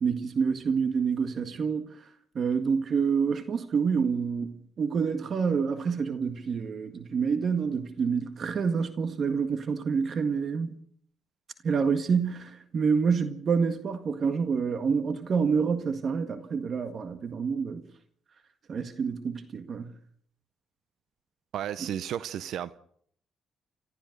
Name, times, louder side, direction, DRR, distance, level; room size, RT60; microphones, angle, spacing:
voice 1, 0.0-1.9 2.4-10.7 11.6-17.8 18.7-19.9, right 6 dB, 50° right, 1.8 m, -27 dB
voice 2, 21.5-22.8, right 10 dB, 75° right, 0.8 m, -33 dB
29.5 x 14.0 x 6.7 m
cardioid pair, 90°, 0 cm